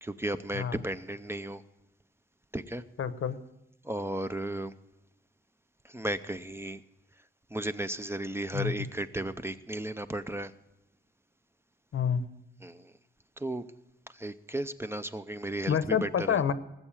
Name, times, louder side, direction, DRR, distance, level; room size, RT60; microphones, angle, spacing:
voice 1, 0.0-1.6 2.5-2.8 3.8-4.7 5.8-6.8 7.5-10.5 12.6-12.9 13.4-13.6 14.1-16.4, right 1 dB, 10° right, 11 dB, 0.5 m, -34 dB
voice 2, 3.0-3.4 8.5-8.7 11.9-12.2 15.7-16.5, left 7 dB, 90° left, 12 dB, 1.0 m, -28 dB
19.0 x 7.9 x 7.2 m, 0.94 s
wide cardioid pair, 165°, 21 cm